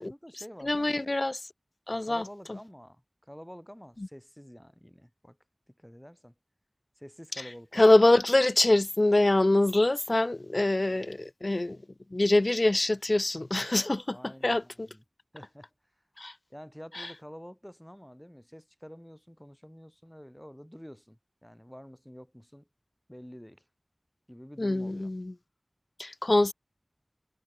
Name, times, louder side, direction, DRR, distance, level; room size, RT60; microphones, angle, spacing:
voice 1, 0.0-1.0 2.0-5.4 5.7-6.3 7.0-7.8 10.8-11.2 14.1-15.0 15.3-15.7 16.5-22.7 23.1-23.7 24.3-25.1, equal, 5° left, 2.0 m, -48 dB
voice 2, 0.6-1.4 1.9-2.6 7.7-11.8 12.1-14.2 14.4-14.9 16.2-16.3 17.0-17.1 24.6-25.3 26.0-26.5, left 2 dB, 55° left, 0.5 m, -24 dB
wide cardioid pair, 45°, 0 cm